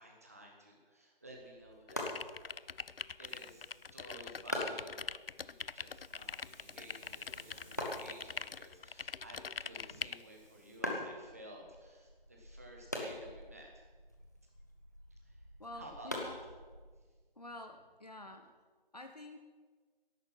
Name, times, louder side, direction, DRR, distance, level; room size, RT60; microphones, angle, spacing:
voice 1, 0.0-2.1 3.2-5.0 5.4-13.7 15.2-15.4 15.7-16.4, right 1 dB, 15° right, 0 dB, 1.3 m, -54 dB
sound 1, 1.2-17.1, left 1 dB, 20° left, 0.9 m, -45 dB
sound 2, 1.9-10.2, left 5 dB, 75° left, 0.5 m, -43 dB
Hiss, 3.3-10.8, right 1 dB, 35° right, 4.3 m, -63 dB
voice 2, 15.6-16.4 17.4-18.5 18.9-19.4, left 1 dB, 45° left, 6 dB, 0.9 m, -49 dB
15.5 x 11.0 x 5.8 m, 1.4 s
figure-of-eight pair, 165°, 29 cm